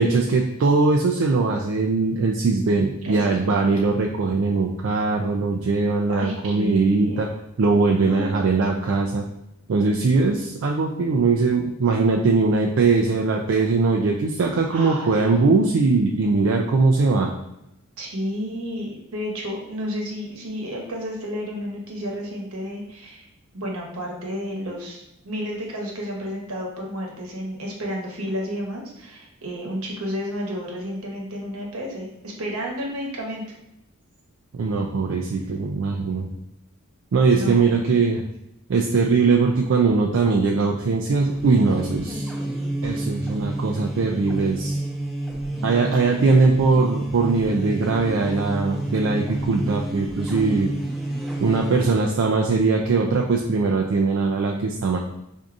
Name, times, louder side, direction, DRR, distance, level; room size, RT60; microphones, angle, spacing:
voice 1, 0.0-7.3 7.6-9.2 9.7-17.3 34.5-36.3 37.1-38.2 38.7-42.3 42.8-44.8 45.6-50.7 51.4-55.0, right 4 dB, 60° right, 0 dB, 0.4 m, -21 dB
voice 2, 3.0-3.6 6.1-7.3 8.1-8.6 14.7-15.3 18.0-23.3 23.5-33.4 37.3-38.0 42.2-42.3, equal, 80° right, -1 dB, 1.0 m, -31 dB
sound 1, 41.1-52.1, right 1 dB, ahead, 0.6 m, -30 dB
4.6 x 2.6 x 2.5 m, 0.85 s
head